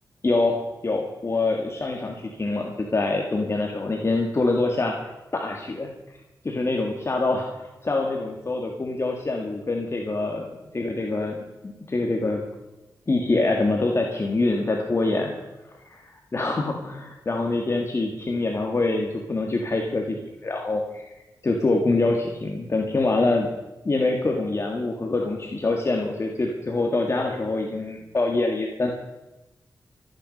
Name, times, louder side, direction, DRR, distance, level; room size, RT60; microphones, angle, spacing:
voice 1, 0.2-0.6 0.8-5.0 5.3-5.9 6.4-7.5 7.8-12.4 13.1-15.3 15.9-16.0 16.3-20.2 20.4-21.1 21.4-23.5 23.8-28.9, left 2 dB, 40° left, 1 dB, 2.0 m, -25 dB
25.5 x 9.6 x 5.4 m, 1.0 s
wide cardioid pair, 85°, 7 cm